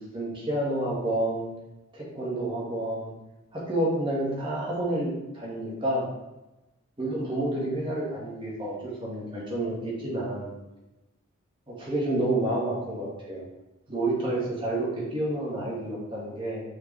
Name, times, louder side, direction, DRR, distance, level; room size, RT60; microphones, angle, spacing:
voice 1, 0.0-1.5 1.9-3.1 3.5-6.1 7.0-10.5 11.7-13.4 13.9-16.6, right 1 dB, 25° right, -6 dB, 2.1 m, -29 dB
6.1 x 5.2 x 3.5 m, 0.99 s
head